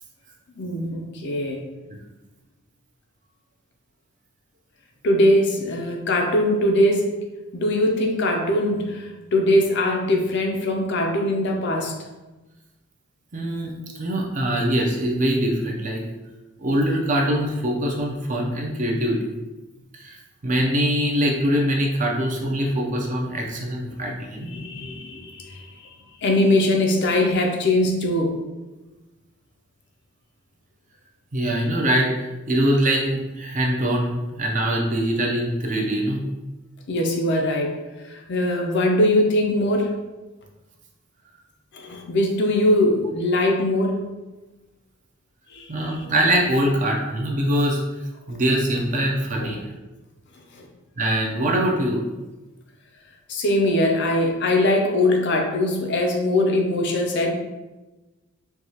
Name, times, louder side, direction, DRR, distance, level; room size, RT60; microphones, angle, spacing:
voice 1, 0.6-1.6 5.0-7.1 7.5-12.0 23.9-24.0 24.4-25.9 26.2-28.4 36.9-37.8 38.0-40.0 41.7-44.0 45.5-46.1 49.4-49.6 50.5-50.7 53.3-57.3, left 1 dB, 55° left, 2 dB, 0.5 m, -21 dB
voice 2, 13.3-13.7 14.0-16.0 16.6-19.4 19.9-24.5 31.3-36.3 45.7-47.8 48.3-49.6 51.0-52.0, right 1 dB, 35° right, -1 dB, 0.6 m, -23 dB
4.6 x 2.3 x 2.8 m, 1.1 s
head